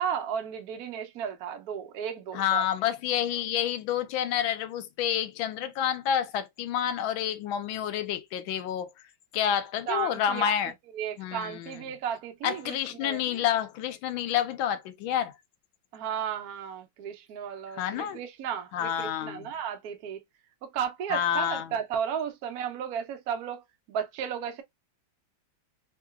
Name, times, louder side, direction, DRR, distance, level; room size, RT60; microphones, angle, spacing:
voice 1, 0.0-2.7 9.9-10.5 10.9-13.2 15.9-20.2 20.6-23.6 23.9-24.6, right 8 dB, 70° right, 0.9 m, -34 dB
voice 2, 2.3-8.9 9.3-10.7 11.2-11.8 12.4-15.3 17.7-18.2 18.7-19.5 21.1-21.7, left 10 dB, 85° left, 1.5 m, -29 dB
3.7 x 2.8 x 2.2 m
omnidirectional pair, 2.1 m